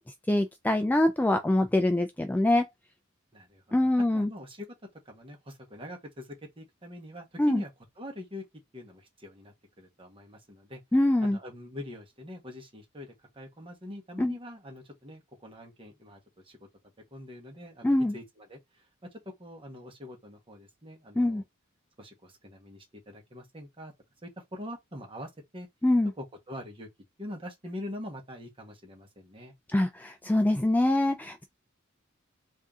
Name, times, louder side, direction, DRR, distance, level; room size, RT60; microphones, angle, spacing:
voice 1, 0.3-2.7 3.7-4.3 7.4-7.6 10.9-11.4 14.2-14.3 17.8-18.1 21.2-21.4 25.8-26.1 29.7-31.4, left 1 dB, 10° left, 0.3 m, -24 dB
voice 2, 3.3-4.7 5.0-7.7 8.0-8.4 8.7-10.8 11.2-16.7 17.1-21.4 22.0-23.9 24.2-25.7 26.2-26.9 27.2-29.5, left 1 dB, 25° right, 1.2 m, -44 dB
3.5 x 2.7 x 3.6 m
head